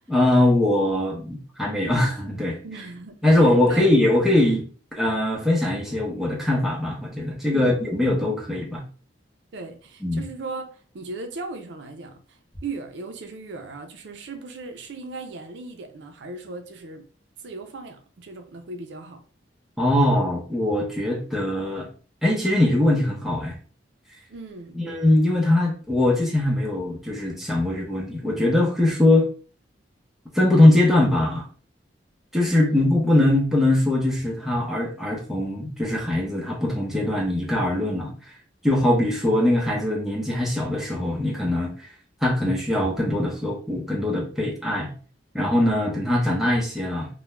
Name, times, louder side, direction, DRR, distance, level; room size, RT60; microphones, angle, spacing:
voice 1, 0.1-2.6 3.2-4.6 4.9-8.8 10.0-10.2 19.8-21.9 22.2-23.5 24.7-29.3 30.3-31.5 32.3-38.1 38.6-41.9 42.2-44.9 45.3-47.1, left 1 dB, ahead, 0.6 m, -21 dB
voice 2, 2.6-4.2 7.5-7.8 9.5-17.1 17.4-19.2 24.3-24.8 32.5-32.9, right 3 dB, 70° right, 0.4 m, -37 dB
2.3 x 2.1 x 3.1 m
head